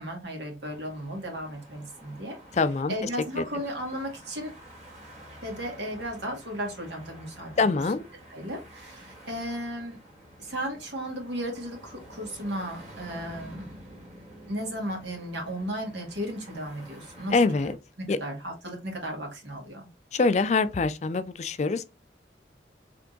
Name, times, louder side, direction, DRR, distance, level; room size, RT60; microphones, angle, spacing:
voice 1, 0.0-2.4 2.9-4.5 5.4-7.8 8.3-10.0 10.4-13.7 14.5-17.7 18.2-19.9, equal, 85° right, 1.9 m, -35 dB
sound 1, 0.6-17.7, equal, 40° right, 2.0 m, -49 dB
voice 2, 2.5-2.9 3.4-3.5 7.6-8.0 17.3-17.7 18.1-18.2 20.1-21.8, left 4 dB, 40° left, 0.4 m, -24 dB
3.7 x 3.4 x 3.8 m
head